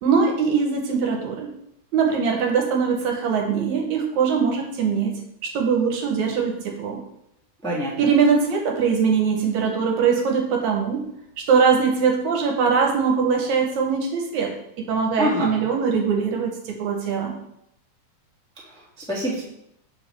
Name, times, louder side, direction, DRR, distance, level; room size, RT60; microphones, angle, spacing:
voice 1, 0.0-1.5 1.9-7.0 8.0-11.0 11.4-17.4, right 6 dB, 75° right, 2 dB, 2.1 m, -22 dB
voice 2, 7.6-8.1 15.2-15.5 18.6-19.4, equal, 5° left, -7 dB, 0.5 m, -26 dB
6.8 x 4.7 x 3.3 m, 0.77 s
omnidirectional pair, 3.6 m